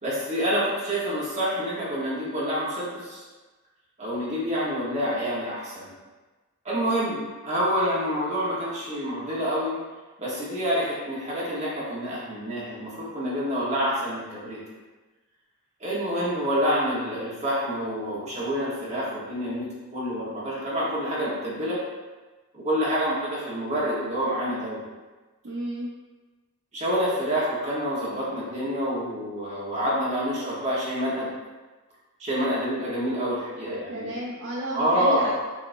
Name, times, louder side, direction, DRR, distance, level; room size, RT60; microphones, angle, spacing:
voice 1, 0.0-3.2 4.0-5.9 6.6-9.8 10.2-14.6 15.8-21.8 22.5-24.8 26.7-31.3 32.2-34.1 34.7-35.3, equal, 30° right, -7 dB, 1.2 m, -27 dB
voice 2, 25.4-25.9 33.7-35.3, equal, 55° right, -4 dB, 0.4 m, -33 dB
5.5 x 2.6 x 2.6 m, 1.3 s
head